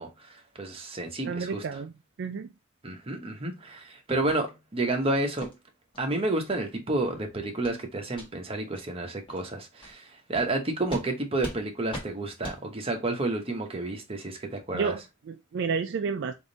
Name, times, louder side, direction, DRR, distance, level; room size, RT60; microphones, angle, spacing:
voice 1, 0.0-1.6 2.8-5.5 6.0-14.9, right 2 dB, 30° right, 0.9 m, -30 dB
voice 2, 1.2-1.9 2.2-2.5 14.7-16.3, right 5 dB, 55° right, 0.3 m, -31 dB
sound 1, 4.3-4.4 4.8-5.0 5.4-5.5 5.9-6.0 6.5-6.6 7.0-7.2 7.6-7.8 8.1-8.3 8.7-8.8 9.3-9.4 9.8-9.9 10.3-10.5 10.9-11.1 11.4-11.6 11.9-12.1 12.4-12.6, equal, 25° left, 1.4 m, -39 dB
3.5 x 2.6 x 3.9 m
head